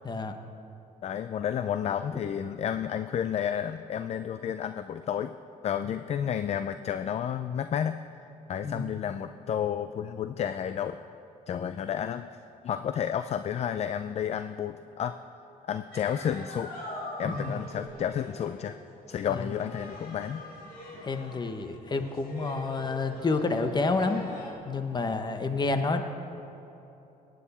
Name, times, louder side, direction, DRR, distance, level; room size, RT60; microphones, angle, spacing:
voice 1, 0.0-0.4 8.6-8.9 17.2-17.6 19.3-19.5 21.0-24.2 24.6-26.0, left 3 dB, 30° left, 7 dB, 0.9 m, -29 dB
voice 2, 1.0-5.3 5.6-8.0 8.5-11.0 11.5-12.3 12.6-15.1 15.7-16.7 17.2-18.8 19.1-20.5, left 9 dB, 45° left, 10 dB, 0.4 m, -31 dB
sound 1, 15.9-24.5, left 1 dB, 65° left, 2.7 m, -43 dB
19.0 x 9.3 x 4.2 m, 3.0 s
cardioid pair, 105°, 16 cm